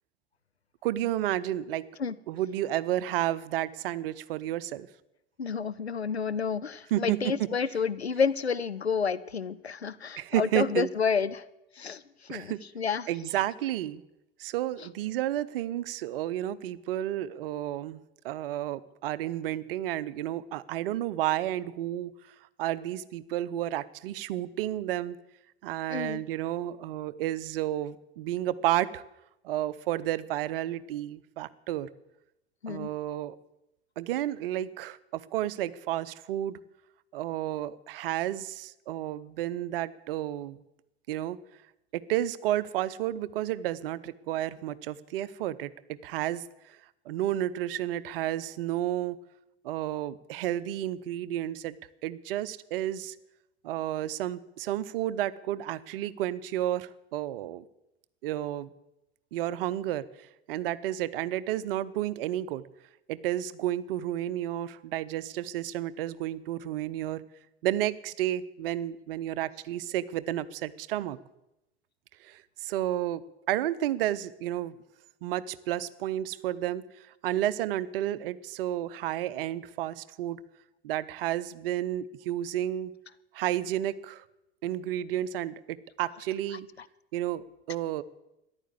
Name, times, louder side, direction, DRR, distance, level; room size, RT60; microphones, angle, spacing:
voice 1, 0.8-1.8 2.3-4.9 6.9-7.2 10.2-10.9 12.3-12.6 13.1-14.0 14.4-18.0 18.2-22.1 22.6-25.2 25.6-29.0 29.4-31.9 32.7-33.4 34.0-36.6 37.1-40.6 41.1-41.4 41.9-46.4 47.1-49.2 49.6-51.8 52.0-53.1 53.6-57.6 58.2-58.7 59.3-62.6 63.1-67.2 67.6-71.2 72.2-73.2 73.5-74.7 75.2-76.8 77.2-80.4 80.8-82.9 83.3-84.2 84.6-86.7 87.1-88.0, right 13 dB, 60° right, 16 dB, 0.8 m, -31 dB
voice 2, 5.4-11.4 11.8-12.0 12.3-13.1 25.9-26.2 32.6-32.9, left 6 dB, 90° left, 14 dB, 0.6 m, -30 dB
14.0 x 10.5 x 8.3 m, 0.90 s
figure-of-eight pair, 70°, 31 cm